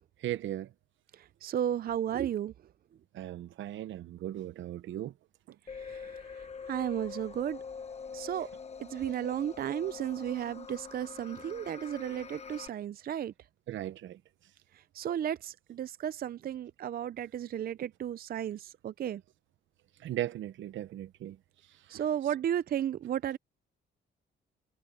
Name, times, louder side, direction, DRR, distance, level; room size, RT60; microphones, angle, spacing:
voice 1, 0.2-0.7 3.1-5.1 5.5-5.6 13.7-14.2 20.0-21.4 21.7-22.0, right 13 dB, 75° right, 0.9 m, -37 dB
voice 2, 1.1-2.5 5.7-7.6 8.1-8.5 8.8-13.3 14.7-19.2 21.9-23.4, right 10 dB, 50° right, 0.5 m, -34 dB
sound 1, 5.7-12.7, left 5 dB, 35° left, 1.1 m, -44 dB
cardioid pair, 90°, 20 cm